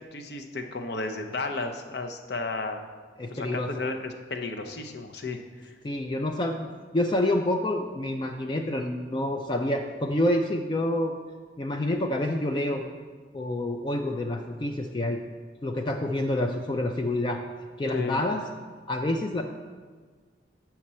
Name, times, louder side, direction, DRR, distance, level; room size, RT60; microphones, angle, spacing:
voice 1, 0.1-2.9 3.3-5.7 17.9-18.2, left 3 dB, 60° left, 5 dB, 0.6 m, -33 dB
voice 2, 3.2-3.7 5.8-11.1 11.6-12.8 13.3-15.2 15.6-17.4 17.8-18.4 18.9-19.4, left 1 dB, 25° left, 4 dB, 0.3 m, -28 dB
7.4 x 5.9 x 4.2 m, 1.5 s
head